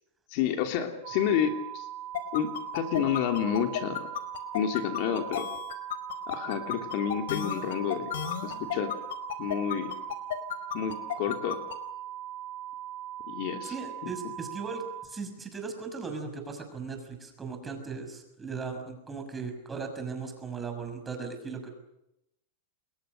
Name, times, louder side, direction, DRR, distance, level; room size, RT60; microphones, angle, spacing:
voice 1, 0.3-1.9 2.3-4.1 4.5-5.5 6.3-8.1 8.4-8.9 9.4-9.9 10.7-11.6 13.3-13.7 14.0-14.1, left 9 dB, 50° left, 5 dB, 3.0 m, -29 dB
sound 1, 1.0-15.1, right 12 dB, 50° right, 6.2 m, -40 dB
sound 2, 2.1-11.8, left 11 dB, 75° left, 4.7 m, -33 dB
voice 2, 13.7-21.7, right 4 dB, 10° right, 5 dB, 6.1 m, -38 dB
29.0 x 22.0 x 6.7 m, 0.84 s
supercardioid pair, 150°, 0 cm